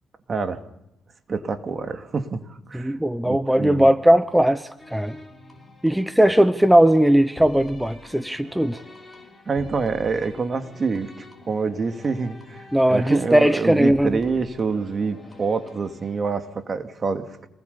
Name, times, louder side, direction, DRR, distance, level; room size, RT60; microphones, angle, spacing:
voice 1, 0.3-0.6 1.3-3.0 3.2-3.9 9.5-17.5, right 4 dB, 40° right, 7 dB, 2.5 m, -27 dB
voice 2, 2.7-5.2 5.8-8.8 12.7-14.1, right 1 dB, 5° right, 12 dB, 1.0 m, -18 dB
sound 1, 4.8-16.3, left 1 dB, 15° left, 6.6 m, -46 dB
26.5 x 20.5 x 7.0 m, 0.83 s
cardioid pair, 90°, 0 cm